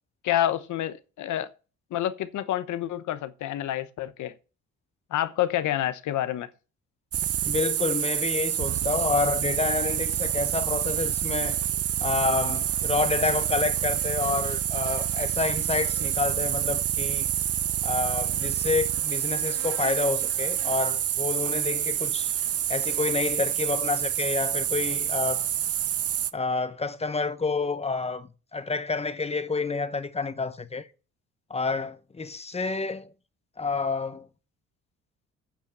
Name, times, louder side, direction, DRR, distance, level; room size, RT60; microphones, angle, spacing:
voice 1, 0.2-1.5 1.9-4.3 5.1-6.5, left 12 dB, 75° left, 0.9 m, -28 dB
sound 1, 7.1-26.3, right 11 dB, 50° right, 0.6 m, -28 dB
voice 2, 7.4-11.6 12.0-17.3 17.8-22.3 22.7-25.5 26.3-30.9 31.5-33.1 33.6-34.3, left 4 dB, 20° left, 0.9 m, -29 dB
8.8 x 5.9 x 6.8 m
cardioid pair, 90°, 30 cm